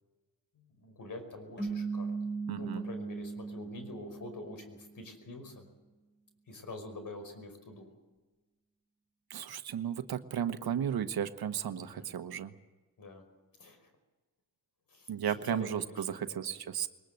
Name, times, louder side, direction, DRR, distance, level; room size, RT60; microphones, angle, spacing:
voice 1, 0.5-2.1 2.6-5.7 6.5-7.9 11.8-12.1 13.0-13.2 13.6-13.9 14.9-16.5, left 2 dB, 60° left, 7 dB, 5.4 m, -46 dB
sound 1, 1.6-4.9, right 4 dB, 30° left, 5.2 m, -38 dB
voice 2, 2.5-2.8 9.3-12.5 15.1-16.9, right 9 dB, 80° right, 10 dB, 1.2 m, -34 dB
22.0 x 20.0 x 7.8 m, 1.3 s
cardioid pair, 60°, 37 cm